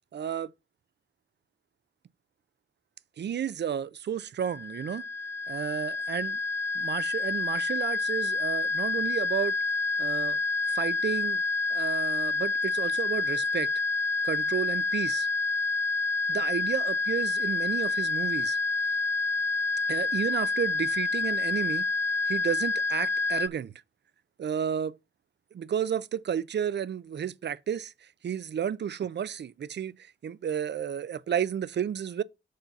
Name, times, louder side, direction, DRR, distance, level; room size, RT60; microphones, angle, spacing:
voice 1, 0.1-0.5 3.2-5.0 5.5-6.4 6.7-9.5 10.0-10.4 10.7-11.4 11.7-13.7 14.2-15.3 16.3-18.6 19.9-21.9 22.3-23.7 24.4-25.0 25.5-27.9 28.2-32.2, right 8 dB, 60° right, 0.5 m, -32 dB
sound 1, 4.4-23.5, left 3 dB, 10° left, 0.5 m, -28 dB
6.6 x 4.0 x 5.8 m
cardioid pair, 50°, 20 cm